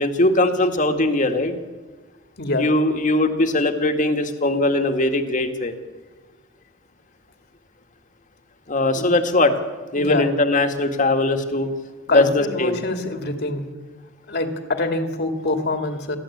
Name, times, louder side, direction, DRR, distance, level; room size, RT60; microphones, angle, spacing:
voice 1, 0.0-1.6 2.6-5.7 8.7-9.5 9.9-11.7 12.1-12.8, left 2 dB, 40° left, 6 dB, 1.9 m, -20 dB
voice 2, 2.4-2.7 8.9-9.1 10.0-10.3 12.1-13.7 14.3-16.2, left 2 dB, 55° left, 6 dB, 2.3 m, -25 dB
28.0 x 11.5 x 8.6 m, 1.4 s
head